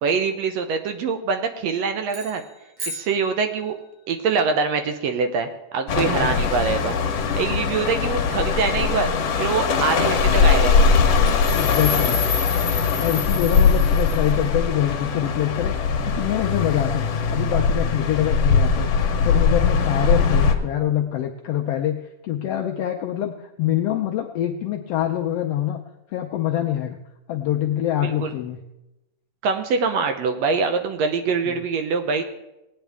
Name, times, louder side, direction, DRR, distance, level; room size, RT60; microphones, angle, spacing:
voice 1, 0.0-2.4 2.9-3.8 4.1-7.0 7.4-9.1 9.4-10.9 28.0-28.3 29.4-32.2, right 5 dB, 70° right, 7 dB, 1.7 m, -24 dB
sound 1, 2.1-4.0, right 1 dB, 40° right, 2.3 m, -37 dB
voice 2, 5.9-6.3 11.5-12.2 13.0-15.8 16.1-17.0 17.3-18.9 19.2-25.8 26.1-27.0 27.3-28.6 31.4-31.5, left 11 dB, 80° left, 4 dB, 1.4 m, -25 dB
sound 2, 5.9-20.5, left 5 dB, 65° left, 2.0 m, -20 dB
18.5 x 9.0 x 3.5 m, 0.94 s
omnidirectional pair, 3.4 m